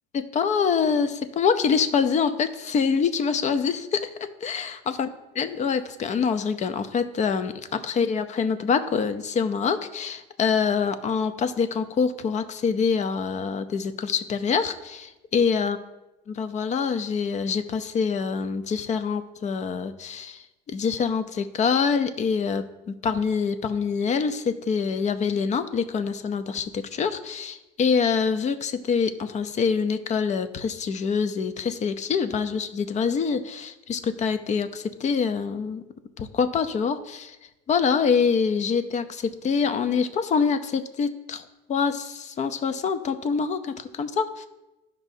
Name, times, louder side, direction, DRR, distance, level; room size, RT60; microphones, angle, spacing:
voice 1, 0.1-5.1 5.4-15.8 16.3-35.8 36.2-37.4 37.7-44.5, left 6 dB, 35° left, 11 dB, 0.6 m, -25 dB
12.0 x 5.3 x 2.7 m, 1.0 s
supercardioid pair, 105°, 21 cm